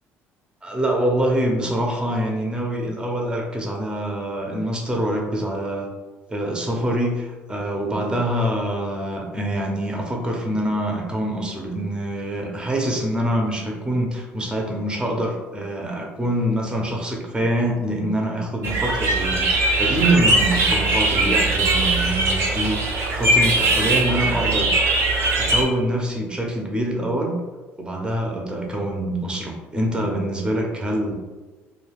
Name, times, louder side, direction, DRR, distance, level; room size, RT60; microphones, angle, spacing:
voice 1, 0.6-5.9 6.3-24.7 25.3-27.3 27.8-31.1, right 1 dB, 15° right, 0 dB, 0.6 m, -25 dB
sound 1, 18.6-25.6, right 2 dB, 60° right, 0.6 m, -20 dB
2.3 x 2.2 x 3.3 m, 1.2 s
supercardioid pair, 75°, 5 cm